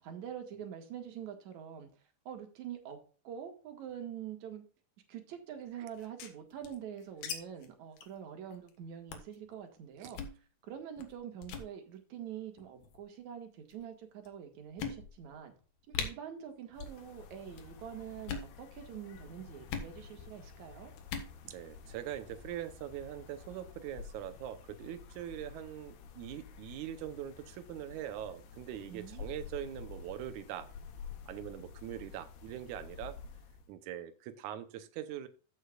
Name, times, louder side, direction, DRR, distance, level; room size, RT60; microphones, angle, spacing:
voice 1, 0.0-1.9 2.3-3.0 3.2-4.6 5.1-10.2 10.6-15.5 15.9-20.9 28.9-29.2, right 9 dB, 55° right, 5 dB, 2.5 m, -45 dB
sound 1, 5.9-7.4 7.6-7.7 8.0-8.2 8.5-8.7 9.1-9.4 10.0-10.4 11.0-11.1 11.4-11.7 12.6-13.0 13.7-13.8 14.2-14.3 14.8-15.3 15.6-15.7 15.9-16.1 16.7-17.0 17.3-17.7 18.1-18.5 19.7-19.9 21.0-21.3, left 6 dB, 70° left, 3.1 m, -40 dB
sound 2, 16.7-33.7, left 6 dB, 90° left, 3.2 m, -51 dB
voice 2, 21.4-30.7 31.3-33.2 33.7-35.3, right 11 dB, 90° right, 9 dB, 1.7 m, -42 dB
14.5 x 6.5 x 2.4 m, 0.39 s
omnidirectional pair, 4.5 m